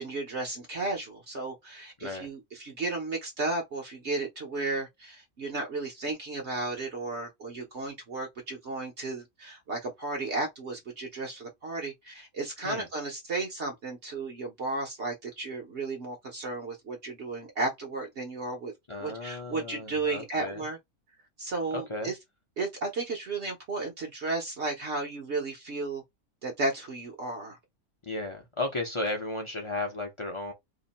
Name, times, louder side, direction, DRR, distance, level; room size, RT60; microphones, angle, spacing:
voice 1, 0.0-18.7 19.0-20.8 21.4-22.2 22.6-26.0 26.4-27.6, right 3 dB, 55° right, 1.0 m, -34 dB
voice 2, 2.0-2.3 12.6-12.9 18.9-20.7 21.7-22.1 28.0-30.5, left 2 dB, 30° left, 0.6 m, -34 dB
2.8 x 2.6 x 4.0 m
omnidirectional pair, 1.6 m